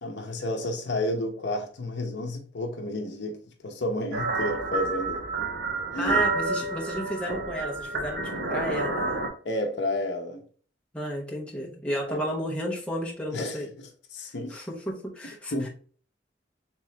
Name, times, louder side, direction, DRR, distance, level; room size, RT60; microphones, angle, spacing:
voice 1, 0.0-3.4 3.6-5.2 5.9-6.2 9.4-10.4 12.1-12.2 13.3-13.6 14.1-14.6 15.5-15.7, left 1 dB, 70° left, 0.7 m, -31 dB
sound 1, 4.1-9.3, right 3 dB, 65° right, 0.9 m, -29 dB
voice 2, 6.0-9.3 10.9-13.7 14.5-15.5, equal, 5° left, 0.8 m, -32 dB
3.6 x 3.0 x 3.0 m
head